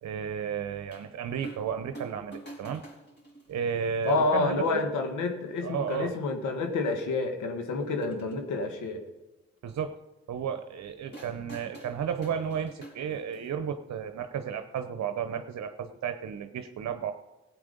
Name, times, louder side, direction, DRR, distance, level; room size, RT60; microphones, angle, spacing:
voice 1, 0.0-2.8 3.5-4.9 5.6-6.2 9.6-10.0 10.3-17.1, right 7 dB, 65° right, 8 dB, 0.9 m, -33 dB
sound 1, 0.9-1.0 1.4-1.7 1.9-4.1 5.0-5.1 6.1-6.2 6.5-6.6 7.8-8.4 11.1-13.5 14.8-14.9, right 2 dB, 35° left, 4.4 m, -47 dB
voice 2, 4.1-9.0, left 3 dB, 80° left, 4 dB, 1.8 m, -29 dB
15.5 x 8.7 x 5.3 m, 1.1 s
supercardioid pair, 50°, 30 cm